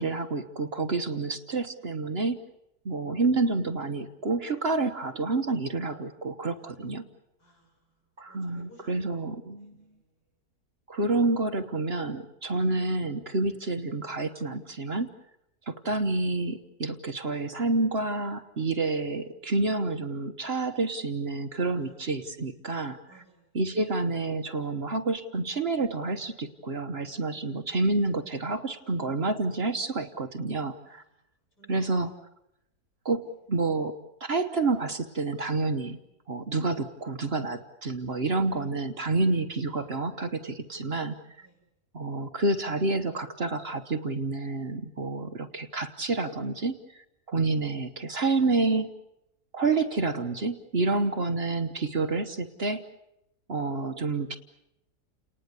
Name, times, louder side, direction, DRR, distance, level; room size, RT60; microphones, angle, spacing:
voice 1, 0.0-2.4 2.8-7.0 8.2-9.8 10.9-15.1 15.7-23.0 23.5-31.0 31.7-32.1 33.0-36.0 36.3-41.5 41.9-48.9 49.5-52.8 53.5-54.4, right 3 dB, 40° right, 8 dB, 1.2 m, -29 dB
voice 2, 6.5-6.9 7.4-10.4 21.8-22.1 23.1-23.6 30.8-31.9 33.2-33.5 41.4-41.6, right 1 dB, 85° left, 0 dB, 8.2 m, -61 dB
30.0 x 19.5 x 8.2 m, 0.84 s
omnidirectional pair, 1.7 m